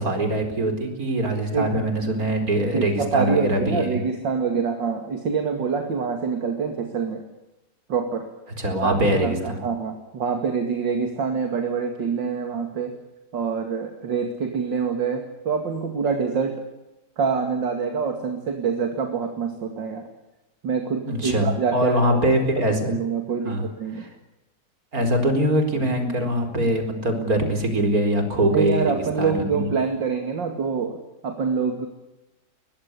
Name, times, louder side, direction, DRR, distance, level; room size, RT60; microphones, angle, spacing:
voice 1, 0.0-4.0 8.6-9.6 21.0-22.9 23.4-23.6 23.9-24.1 24.9-29.7, right 1 dB, 45° right, 6 dB, 4.9 m, -23 dB
voice 2, 2.7-7.2 7.9-8.3 8.8-12.9 13.3-16.6 17.2-20.1 20.6-22.2 22.6-24.0 28.5-31.0 31.2-31.9, right 5 dB, 60° right, 5 dB, 2.9 m, -26 dB
22.5 x 20.5 x 8.4 m, 0.96 s
omnidirectional pair, 2.2 m